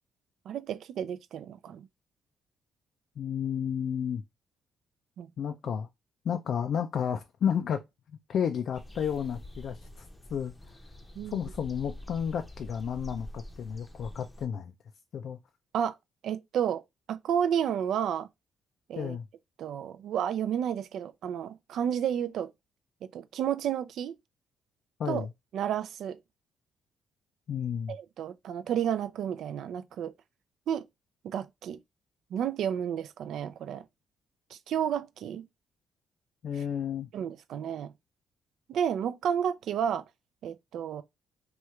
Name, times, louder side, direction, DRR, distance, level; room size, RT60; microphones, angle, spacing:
voice 1, 0.5-1.9 5.2-5.3 11.2-11.4 15.7-16.0 16.2-16.8 17.1-18.3 18.9-19.2 19.6-22.5 23.1-24.1 25.1-25.3 25.5-26.2 27.9-30.1 30.7-30.8 31.2-31.8 32.3-33.8 34.5-35.5 37.1-37.9 38.7-40.0 40.4-41.0, right 9 dB, 75° right, 0.3 m, -31 dB
voice 2, 3.2-4.2 5.4-5.9 6.2-7.8 8.3-10.0 10.3-10.5 11.3-14.7 15.1-15.4 19.0-19.3 25.0-25.3 27.5-28.0 36.4-37.1, left 8 dB, 65° left, 0.3 m, -32 dB
sound 1, 8.7-14.5, left 1 dB, 15° left, 0.6 m, -46 dB
3.0 x 2.3 x 3.1 m
cardioid pair, 90°, 0 cm